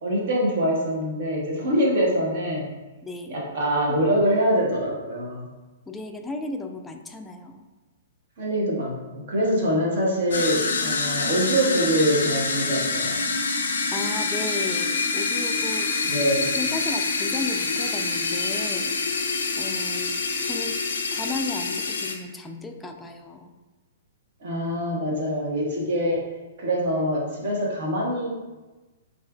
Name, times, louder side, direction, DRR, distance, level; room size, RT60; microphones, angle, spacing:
voice 1, 0.0-2.7 3.3-5.5 8.4-13.2 16.0-16.5 24.4-26.2 26.6-28.3, equal, 60° right, -3 dB, 1.1 m, -24 dB
voice 2, 3.0-3.4 5.9-7.6 13.9-16.2 16.6-19.2 19.6-20.2 20.4-20.8 21.1-23.5, left 3 dB, 10° left, 4 dB, 0.3 m, -34 dB
sound 1, 10.3-22.1, left 4 dB, 75° left, 0.4 m, -26 dB
4.2 x 2.5 x 2.4 m, 1.2 s
hypercardioid pair, 120°, 0 cm